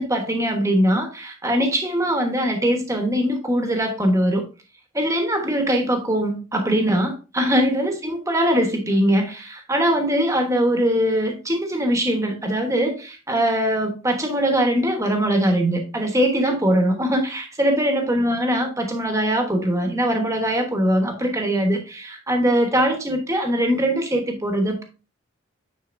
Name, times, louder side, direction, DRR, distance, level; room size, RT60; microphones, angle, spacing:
voice 1, 0.0-4.4 4.9-24.8, equal, 15° right, 4 dB, 1.1 m, -21 dB
9.3 x 4.0 x 2.5 m, 0.32 s
head